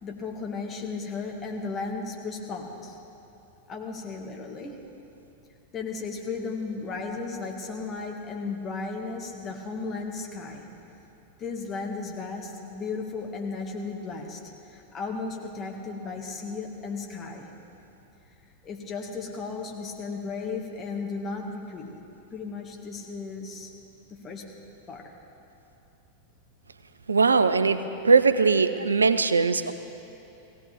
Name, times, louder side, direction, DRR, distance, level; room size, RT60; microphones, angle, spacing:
voice 1, 0.0-3.0 3.7-4.8 5.7-10.7 11.4-14.4 14.7-17.5 18.6-22.0 22.3-23.7 24.1-24.4 24.9-25.1, left 4 dB, 25° left, 0 dB, 2.0 m, -35 dB
voice 2, 27.1-27.8 28.0-29.7, right 4 dB, 75° right, 12 dB, 0.5 m, -20 dB
18.0 x 17.0 x 3.6 m, 2.9 s
figure-of-eight pair, 90°, 0 cm